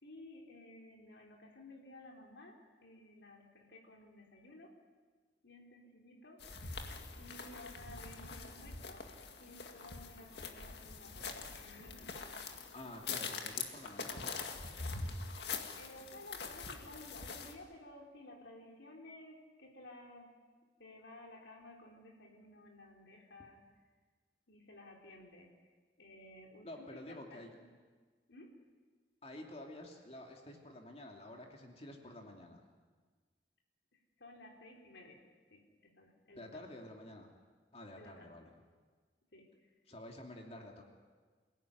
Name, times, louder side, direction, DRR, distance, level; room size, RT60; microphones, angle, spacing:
voice 1, 0.0-4.7 5.4-6.7 7.2-9.0 9.4-12.2 15.8-20.3 20.8-23.6 24.5-27.8 28.3-28.5 33.9-35.2 35.5-36.6 37.9-38.3 39.3-39.7, left 1 dB, 80° left, 0 dB, 3.9 m, -55 dB
sound 1, 6.4-17.5, left 4 dB, 65° left, 2.2 m, -44 dB
voice 2, 12.7-14.4 26.6-27.5 29.2-32.6 36.4-37.4 37.7-38.5 39.9-40.8, left 1 dB, 35° left, 1 dB, 2.8 m, -50 dB
27.5 x 17.5 x 9.6 m, 1.5 s
head